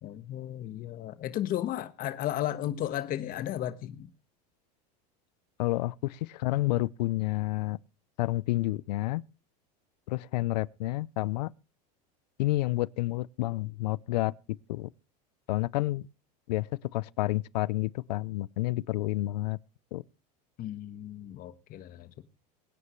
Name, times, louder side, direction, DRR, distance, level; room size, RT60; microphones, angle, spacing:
voice 1, 0.0-4.1 20.6-22.2, left 12 dB, 45° left, 1.4 m, -34 dB
voice 2, 5.6-7.8 8.2-9.2 10.1-11.5 12.4-14.3 14.7-14.9 15.5-16.1 16.5-19.6 19.9-20.0, left 18 dB, 85° left, 0.6 m, -29 dB
22.0 x 9.7 x 3.1 m
supercardioid pair, 115°, 21 cm